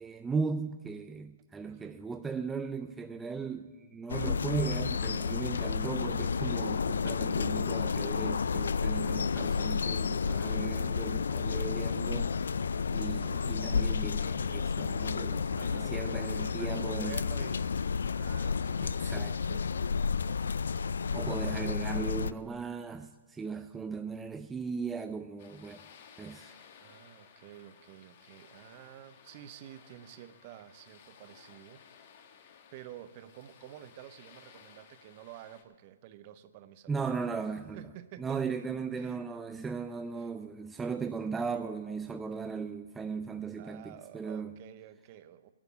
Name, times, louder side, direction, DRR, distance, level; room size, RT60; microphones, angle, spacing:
voice 1, 0.0-12.3 12.9-17.2 18.8-19.7 21.1-25.8 26.2-26.5 36.9-37.8 38.2-44.5, right 5 dB, 10° right, 0.3 m, -37 dB
voice 2, 1.6-2.0 6.3-6.9 13.0-13.4 15.6-18.9 21.4-22.3 26.8-31.8 32.7-37.0 37.8-38.6 38.9-39.3 40.1-40.3 43.5-45.5, right 12 dB, 35° right, 0.7 m, -50 dB
sound 1, 4.1-22.3, left 5 dB, 85° left, 0.3 m, -31 dB
sound 2, 25.4-35.6, left 7 dB, 45° left, 1.2 m, -57 dB
11.0 x 7.1 x 9.6 m
hypercardioid pair, 150°, 0 cm